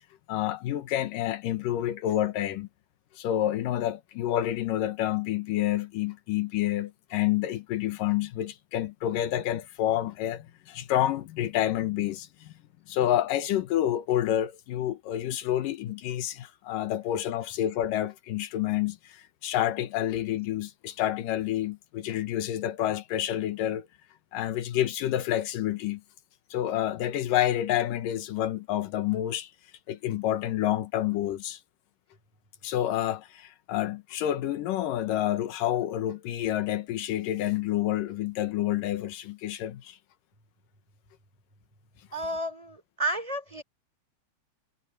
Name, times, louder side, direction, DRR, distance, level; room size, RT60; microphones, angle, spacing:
voice 1, 0.3-2.7 3.2-12.5 12.9-23.9 24.3-26.0 26.5-29.5 29.9-31.6 32.6-40.0, left 12 dB, 90° left, 2.8 m, -28 dB
voice 2, 42.1-43.6, right 1 dB, 10° right, 3.1 m, -31 dB
omnidirectional pair, 3.8 m